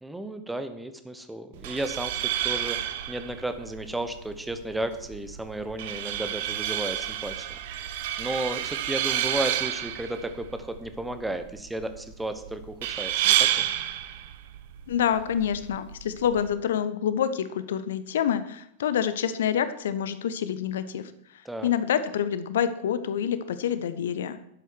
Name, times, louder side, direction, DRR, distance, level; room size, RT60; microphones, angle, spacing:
voice 1, 0.0-13.6 21.4-21.7, right 1 dB, 5° right, 9 dB, 0.9 m, -34 dB
sound 1, 1.5-16.5, right 12 dB, 50° right, 0.8 m, -30 dB
voice 2, 14.9-21.1 21.6-24.4, left 9 dB, 60° left, 13 dB, 0.7 m, -27 dB
11.5 x 8.1 x 4.5 m, 0.75 s
figure-of-eight pair, 90°, 0 cm